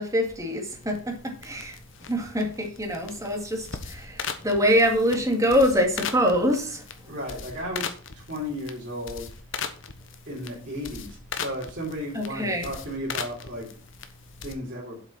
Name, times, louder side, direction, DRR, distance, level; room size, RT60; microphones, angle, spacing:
voice 1, 0.0-1.8 2.1-6.8 12.1-12.7, equal, 15° right, 2.2 m, -24 dB
sound 1, 0.7-14.5, left 6 dB, 60° left, 1.2 m, -39 dB
voice 2, 7.0-9.3 10.3-13.7 14.4-15.0, equal, 45° right, 3.8 m, -34 dB
7.9 x 6.0 x 7.1 m
head